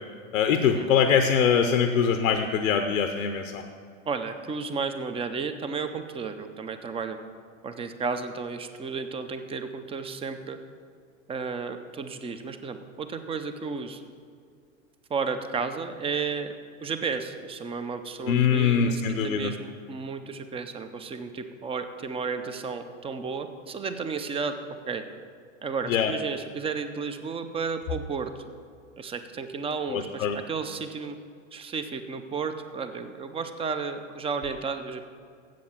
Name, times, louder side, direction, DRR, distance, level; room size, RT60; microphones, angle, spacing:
voice 1, 0.3-3.6 18.3-19.5 25.9-26.1 29.9-30.4, left 7 dB, 85° left, 7 dB, 0.8 m, -23 dB
voice 2, 4.1-7.2 7.6-10.6 11.3-14.0 15.1-16.6 16.8-24.6 24.9-25.0 25.6-28.3 29.0-31.2 31.5-35.1, right 5 dB, 15° right, 9 dB, 0.5 m, -33 dB
7.7 x 7.5 x 7.2 m, 2.2 s
hypercardioid pair, 115°, 40 cm